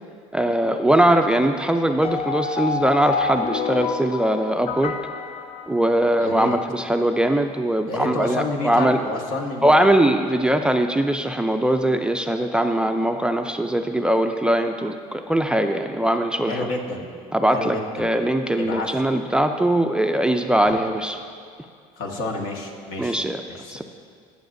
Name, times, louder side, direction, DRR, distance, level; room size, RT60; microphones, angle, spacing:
voice 1, 0.3-4.9 5.7-9.0 9.6-16.7 17.3-21.2 23.0-23.4 23.7-23.8, right 1 dB, 5° right, 5 dB, 0.4 m, -21 dB
sound 1, 2.0-6.3, left 5 dB, 45° left, 0.5 m, -28 dB
voice 2, 6.2-6.5 7.9-9.8 16.5-17.1 17.5-18.1 18.5-18.9 20.7-20.8 22.0-23.1 23.5-23.8, left 2 dB, 70° left, 0 dB, 1.6 m, -29 dB
21.5 x 7.1 x 2.6 m, 2.1 s
supercardioid pair, 100°, 14 cm